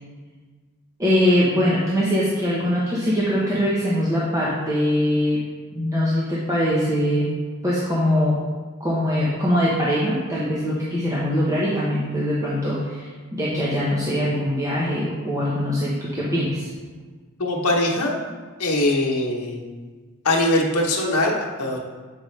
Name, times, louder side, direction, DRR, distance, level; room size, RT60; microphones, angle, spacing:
voice 1, 1.0-7.3 7.6-8.4 8.8-16.7, equal, 15° right, -8 dB, 0.9 m, -22 dB
voice 2, 17.4-18.2 18.6-19.6 20.2-21.8, left 1 dB, 80° left, -1 dB, 1.1 m, -21 dB
8.0 x 5.2 x 3.2 m, 1.4 s
head